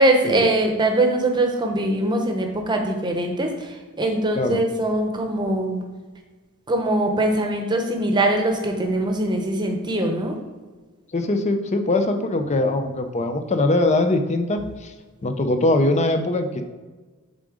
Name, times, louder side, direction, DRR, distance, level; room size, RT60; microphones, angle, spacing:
voice 1, 0.0-5.8 6.7-10.4, right 1 dB, 20° right, 3 dB, 0.9 m, -22 dB
voice 2, 11.1-14.9 15.2-16.6, left 2 dB, 30° left, 7 dB, 0.5 m, -22 dB
7.4 x 3.8 x 4.9 m, 1.3 s
head